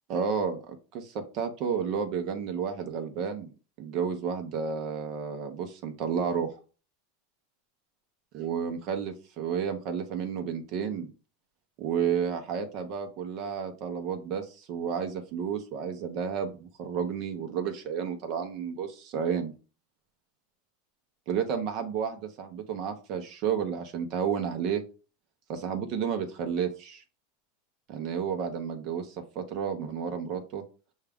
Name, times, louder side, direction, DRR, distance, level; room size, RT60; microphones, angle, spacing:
voice 1, 0.1-3.5 3.8-6.5 8.3-11.1 11.8-19.5 21.3-24.8 25.5-27.0 27.9-30.6, right 7 dB, 45° right, 6 dB, 0.8 m, -31 dB
6.3 x 2.4 x 3.5 m, 0.34 s
supercardioid pair, 145°, 0 cm